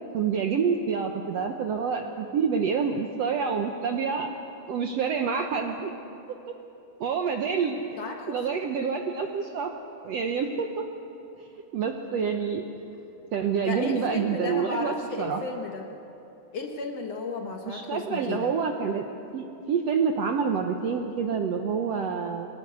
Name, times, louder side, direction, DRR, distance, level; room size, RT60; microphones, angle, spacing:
voice 1, 0.1-4.3 4.7-5.9 7.0-7.8 8.3-9.7 10.0-10.9 11.7-12.6 13.3-15.4 17.6-19.0 19.3-22.5, right 6 dB, 70° right, 4 dB, 1.6 m, -27 dB
voice 2, 8.0-8.7 13.6-15.9 16.5-18.5, left 4 dB, 55° left, 2 dB, 2.0 m, -34 dB
24.0 x 19.0 x 8.2 m, 2.9 s
omnidirectional pair, 4.0 m